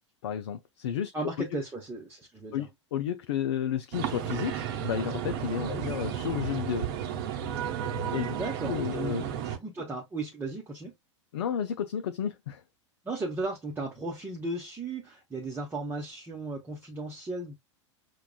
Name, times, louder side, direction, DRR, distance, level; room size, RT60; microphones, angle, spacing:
voice 1, 0.2-1.1 1.5-1.6 2.5-6.9 8.1-8.3 8.6-9.3 11.3-12.6, left 9 dB, 60° left, 0.4 m, -32 dB
voice 2, 1.1-2.7 5.7-5.9 8.3-10.9 13.0-17.5, right 2 dB, 15° right, 0.9 m, -36 dB
sound 1, 3.9-9.6, right 9 dB, 50° right, 0.8 m, -33 dB
5.8 x 2.3 x 2.3 m
figure-of-eight pair, 90°, 16 cm